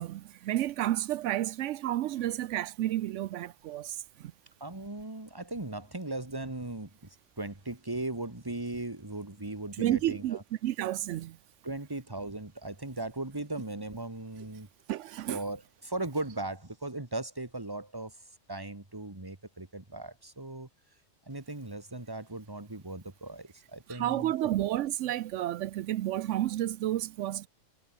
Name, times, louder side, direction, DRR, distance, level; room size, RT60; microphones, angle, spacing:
voice 1, 0.0-4.3 9.8-11.4 14.9-15.4 23.9-27.5, right 13 dB, 85° right, 0.9 m, -31 dB
voice 2, 4.6-10.4 11.6-14.7 15.3-18.2 18.5-20.7 21.3-24.5, right 2 dB, 20° right, 2.2 m, -38 dB
omnidirectional pair, 1.2 m